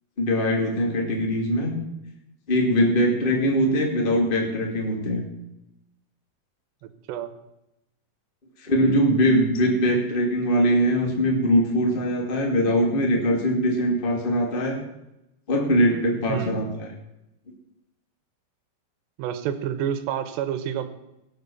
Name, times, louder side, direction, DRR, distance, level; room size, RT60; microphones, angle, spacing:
voice 1, 0.2-1.7 2.5-5.2 8.6-14.8 15.5-16.9, equal, 25° left, 1 dB, 1.2 m, -22 dB
voice 2, 6.8-7.3 16.3-16.6 19.2-20.9, right 9 dB, 75° right, 10 dB, 3.0 m, -29 dB
17.5 x 7.9 x 7.1 m, 0.89 s
omnidirectional pair, 5.2 m